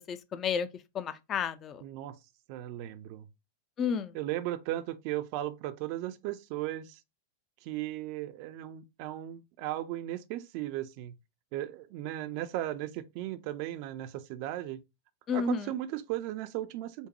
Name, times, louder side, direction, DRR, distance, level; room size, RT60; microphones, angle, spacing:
voice 1, 0.1-0.7 0.9-1.8 3.8-4.1 15.3-15.7, left 6 dB, 30° left, 0.4 m, -31 dB
voice 2, 1.8-2.2 2.5-3.3 4.1-7.0 7.6-11.1 11.5-14.8 15.3-17.1, right 14 dB, 45° right, 0.3 m, -36 dB
5.2 x 2.1 x 3.0 m
figure-of-eight pair, 90°, 0 cm